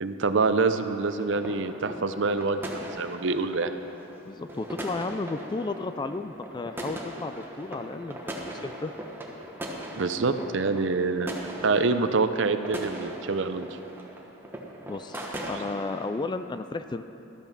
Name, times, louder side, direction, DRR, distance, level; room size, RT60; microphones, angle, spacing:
voice 1, 0.0-3.7 10.0-11.3 11.6-13.7, right 4 dB, 65° right, 10 dB, 0.6 m, -26 dB
sound 1, 1.0-16.1, right 1 dB, 10° right, 1.1 m, -39 dB
voice 2, 4.2-8.9 14.9-17.1, left 3 dB, 20° left, 10 dB, 0.3 m, -33 dB
12.5 x 8.8 x 6.1 m, 2.9 s
head